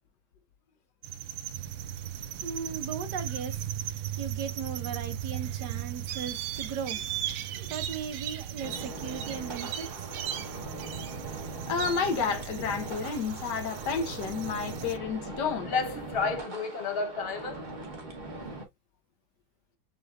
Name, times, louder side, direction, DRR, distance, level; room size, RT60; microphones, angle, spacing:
sound 1, 1.0-15.0, right 10 dB, 70° right, 0.9 m, -37 dB
voice 1, 2.4-3.7 4.2-7.0 7.6-10.1, right 6 dB, 85° right, 1.6 m, -37 dB
sound 2, 8.6-18.7, right 2 dB, 30° right, 1.1 m, -41 dB
voice 2, 11.7-15.7, left 5 dB, 85° left, 1.6 m, -30 dB
sound 3, 15.3-15.4 15.6-17.6, left 4 dB, 45° left, 0.8 m, -31 dB
6.0 x 3.2 x 2.4 m
omnidirectional pair, 1.8 m